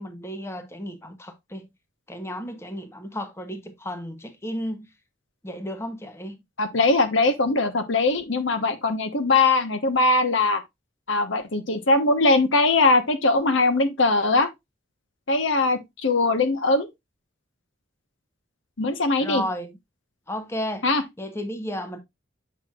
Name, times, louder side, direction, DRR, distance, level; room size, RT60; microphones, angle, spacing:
voice 1, 0.0-1.7 2.1-4.9 5.4-6.4 19.2-19.8 20.3-20.9 21.2-22.0, equal, 15° left, 0.8 m, -33 dB
voice 2, 6.6-10.6 11.1-14.5 15.3-16.9 18.8-19.4 20.8-21.0, left 2 dB, 70° left, 1.0 m, -21 dB
7.2 x 5.9 x 2.4 m
head